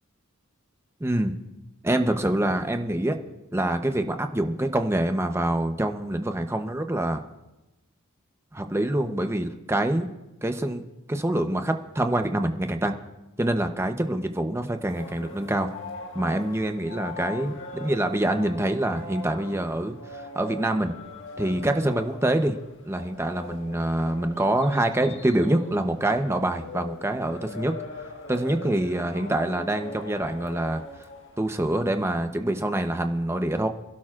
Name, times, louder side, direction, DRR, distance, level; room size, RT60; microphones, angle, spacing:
voice 1, 1.0-1.3 1.8-3.2 3.5-7.3 8.5-10.1 10.4-10.8 11.1-13.0 13.4-15.7 16.1-17.5 17.8-20.9 21.4-22.6 22.8-27.7 28.3-30.8 31.4-33.7, right 1 dB, 10° right, 6 dB, 0.8 m, -25 dB
sound 1, 14.8-31.8, left 2 dB, 60° left, 1.6 m, -41 dB
27.5 x 12.0 x 2.5 m, 1.0 s
head